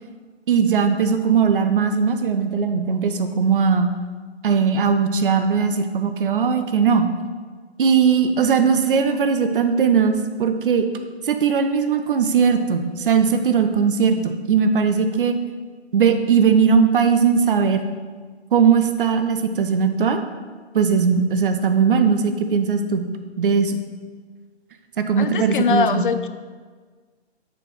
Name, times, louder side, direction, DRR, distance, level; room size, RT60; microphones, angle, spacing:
voice 1, 0.5-3.9 4.4-7.1 7.8-10.9 11.2-15.4 15.9-17.8 18.5-20.2 20.7-23.0 23.4-23.8 25.0-26.0, right 6 dB, 50° right, 8 dB, 0.8 m, -19 dB
voice 2, 25.2-26.3, left 5 dB, 50° left, 11 dB, 0.6 m, -22 dB
7.0 x 5.4 x 4.6 m, 1.5 s
figure-of-eight pair, 130°, 33 cm